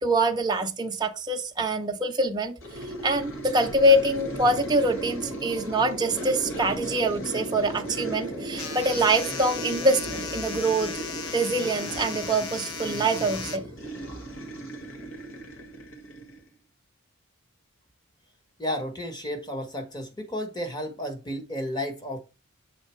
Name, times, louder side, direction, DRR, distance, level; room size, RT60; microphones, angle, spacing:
voice 1, 0.0-2.6 3.0-11.0 11.3-13.7, right 1 dB, 20° right, 0.7 m, -24 dB
sound 1, 2.6-16.5, right 1 dB, 60° left, 1.8 m, -36 dB
sound 2, 8.6-13.6, left 6 dB, 90° left, 1.0 m, -36 dB
voice 2, 18.6-22.2, equal, 20° left, 1.3 m, -32 dB
7.5 x 4.0 x 4.4 m
head